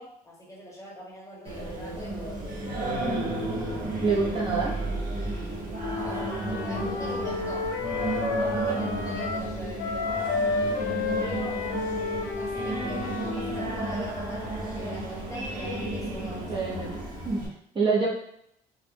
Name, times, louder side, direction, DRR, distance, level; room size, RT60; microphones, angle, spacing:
voice 1, 0.0-2.6 3.0-3.7 5.9-7.7 8.4-10.3 10.7-11.7 12.1-16.9, left 1 dB, 20° left, -4 dB, 0.9 m, -42 dB
Singing, 1.4-17.5, right 1 dB, 55° right, 0.9 m, -32 dB
voice 2, 4.0-4.8 16.5-16.9 17.2-17.4 17.7-18.1, right 4 dB, 30° right, -5 dB, 0.7 m, -25 dB
Wind instrument woodwind instrument, 5.8-9.5 9.8-13.8, left 3 dB, 90° left, 0.6 m, -31 dB
2.3 x 2.1 x 3.3 m, 0.71 s
cardioid pair, 110°, 17 cm